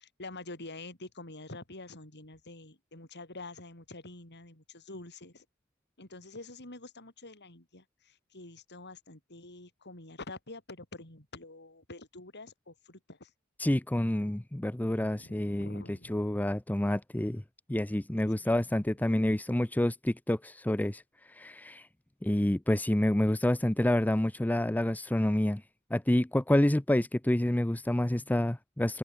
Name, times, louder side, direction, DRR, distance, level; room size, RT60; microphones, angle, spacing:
voice 1, 0.0-5.5 6.0-13.3 15.1-16.2 18.2-18.7, left 2 dB, 55° left, 7.4 m, -47 dB
voice 2, 13.6-17.4 17.7-21.9 22.2-25.6 25.9-29.0, left 1 dB, 10° left, 0.5 m, -28 dB
head